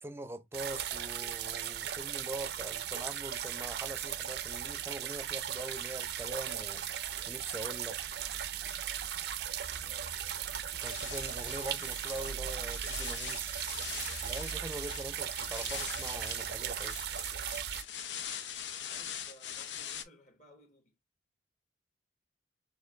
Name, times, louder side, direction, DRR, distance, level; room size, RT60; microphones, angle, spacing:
voice 1, 0.0-8.0 10.7-13.6 14.2-17.0, right 1 dB, 15° right, 0.5 m, -43 dB
sound 1, 0.5-17.8, right 9 dB, 60° right, 0.5 m, -37 dB
voice 2, 9.7-10.2 18.8-21.0, equal, 45° left, 1.4 m, -59 dB
sound 2, 10.9-20.0, left 9 dB, 80° left, 0.7 m, -43 dB
6.5 x 2.6 x 2.4 m
head